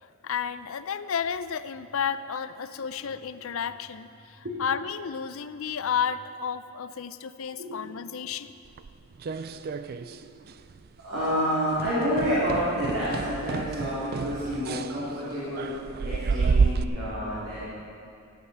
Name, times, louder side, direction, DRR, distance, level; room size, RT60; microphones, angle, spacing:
voice 1, 0.2-8.6, left 7 dB, 65° left, 13 dB, 0.5 m, -32 dB
sound 1, 8.8-10.2 10.5-10.9 11.2-11.3 11.8-16.8, right 5 dB, 45° right, 0.3 m, -29 dB
voice 2, 11.0-17.6, equal, 65° right, -11 dB, 3.5 m, -29 dB
14.5 x 9.6 x 5.6 m, 2.6 s
head